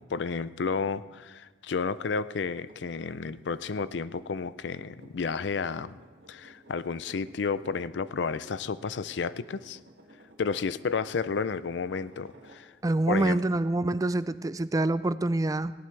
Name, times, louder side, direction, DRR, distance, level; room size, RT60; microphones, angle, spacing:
voice 1, 0.0-6.0 6.3-9.8 10.4-12.7 13.1-13.4, left 5 dB, 75° left, 16 dB, 0.5 m, -31 dB
sound 1, 2.4-12.9 13.3-13.4, right 1 dB, 75° right, 1.8 m, -56 dB
voice 2, 12.8-15.7, right 2 dB, 20° right, 15 dB, 0.4 m, -26 dB
18.0 x 17.5 x 3.3 m, 1.4 s
head